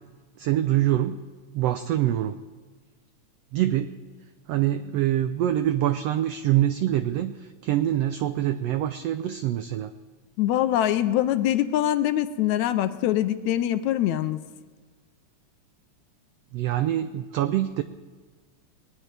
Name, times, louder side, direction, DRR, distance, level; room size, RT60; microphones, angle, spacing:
voice 1, 0.4-1.2 1.5-2.4 3.5-3.9 4.5-9.9 16.5-17.8, right 12 dB, 90° right, 10 dB, 1.4 m, -25 dB
voice 2, 10.4-14.4, left 12 dB, 80° left, 12 dB, 1.9 m, -23 dB
21.0 x 19.5 x 3.3 m, 1.4 s
omnidirectional pair, 3.5 m